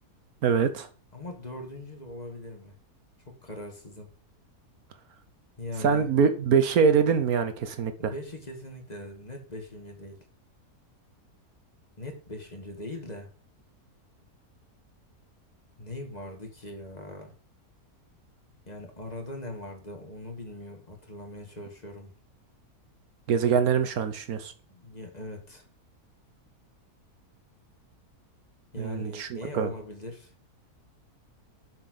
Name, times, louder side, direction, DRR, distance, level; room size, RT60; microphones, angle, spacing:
voice 1, 0.4-0.9 5.8-8.1 23.3-24.5 28.8-29.3 29.5-29.7, right 6 dB, 70° right, 10 dB, 1.4 m, -24 dB
voice 2, 1.1-2.8 3.3-4.1 5.6-6.1 8.0-10.2 12.0-13.3 15.8-17.3 18.7-22.1 24.7-25.6 28.7-30.3, left 1 dB, 25° left, 3 dB, 1.9 m, -40 dB
7.0 x 6.4 x 6.3 m, 0.40 s
omnidirectional pair, 1.6 m